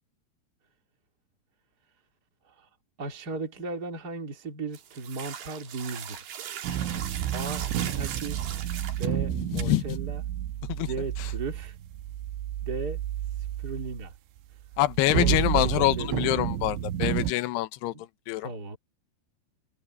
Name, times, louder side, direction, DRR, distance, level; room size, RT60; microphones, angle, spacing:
voice 1, 3.0-6.4 7.3-8.4 8.9-10.2 10.7-11.8 12.6-13.0 13.4-14.1 15.1-16.3 17.9-18.0 18.4-18.8, right 3 dB, 25° right, 2.6 m, -36 dB
sound 1, 4.7-9.1 9.6-9.7, right 9 dB, 55° right, 3.7 m, -39 dB
sound 2, 6.6-14.1 14.7-17.3, right 11 dB, 75° right, 3.2 m, -31 dB
voice 2, 9.5-10.0 10.7-10.9 11.2-11.3 14.8-17.9 18.3-18.5, left 16 dB, 75° left, 2.5 m, -26 dB
omnidirectional pair, 5.9 m